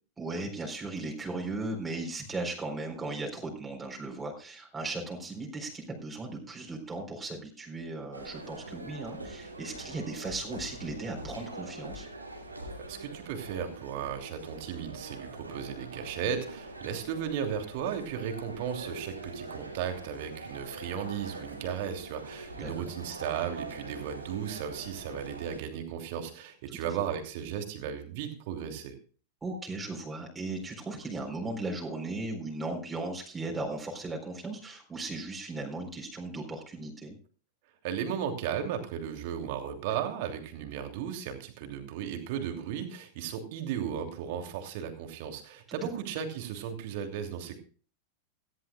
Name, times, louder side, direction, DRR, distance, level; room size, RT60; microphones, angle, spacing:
voice 1, 0.2-12.1 22.6-22.7 26.8-26.9 29.4-37.1 45.7-45.9, right 2 dB, 10° right, 0 dB, 4.1 m, -37 dB
sound 1, 8.1-25.6, right 2 dB, 80° right, 2.9 m, -43 dB
voice 2, 12.8-28.9 37.8-47.6, right 8 dB, 50° right, 5 dB, 2.9 m, -35 dB
17.5 x 15.0 x 2.4 m, 0.40 s
figure-of-eight pair, 90°, 0 cm